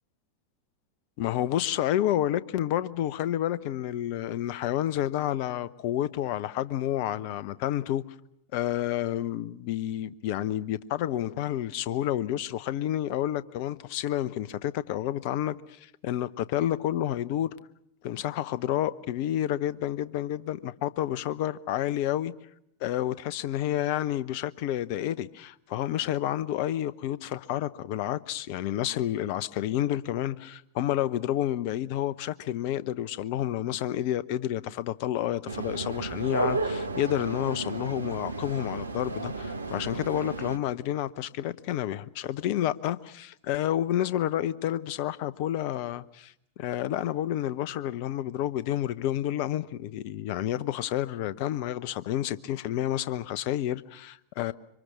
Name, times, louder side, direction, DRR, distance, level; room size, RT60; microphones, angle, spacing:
voice 1, 1.2-8.0 8.5-17.5 18.0-22.3 22.8-46.3 46.6-54.5, left 12 dB, 45° left, 0.8 m, -30 dB
sound 1, 35.5-40.6, right 3 dB, 80° right, 1.1 m, -33 dB
26.0 x 24.0 x 6.4 m
figure-of-eight pair, 90°, 0 cm